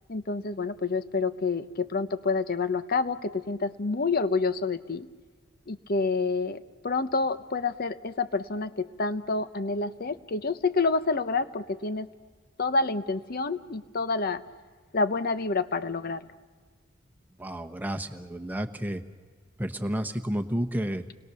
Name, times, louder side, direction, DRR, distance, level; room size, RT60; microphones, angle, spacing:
voice 1, 0.1-5.1 5.7-12.1 12.6-14.4 14.9-16.2, left 3 dB, 45° left, 13 dB, 0.9 m, -28 dB
voice 2, 17.4-19.0 19.6-21.1, equal, 10° right, 5 dB, 1.1 m, -31 dB
30.0 x 21.5 x 6.9 m, 1.5 s
head